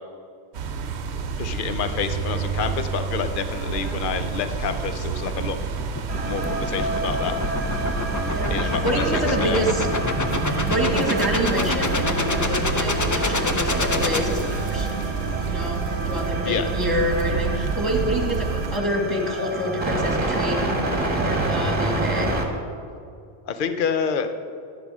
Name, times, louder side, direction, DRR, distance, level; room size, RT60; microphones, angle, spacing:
sound 1, 0.5-18.8, right 5 dB, 80° right, 1.0 m, -29 dB
voice 1, 1.4-5.6 6.2-7.3 8.5-9.6 16.4-16.7 23.5-24.3, left 6 dB, 55° left, 9 dB, 0.8 m, -28 dB
sound 2, 4.7-15.0, left 2 dB, 25° left, 0.4 m, -27 dB
sound 3, 6.1-22.5, right 2 dB, 35° right, 1.4 m, -29 dB
voice 2, 8.3-9.9 10.4-20.7 21.0-22.3, equal, 20° right, -1 dB, 1.8 m, -27 dB
11.5 x 11.0 x 3.6 m, 2.4 s
omnidirectional pair, 1.1 m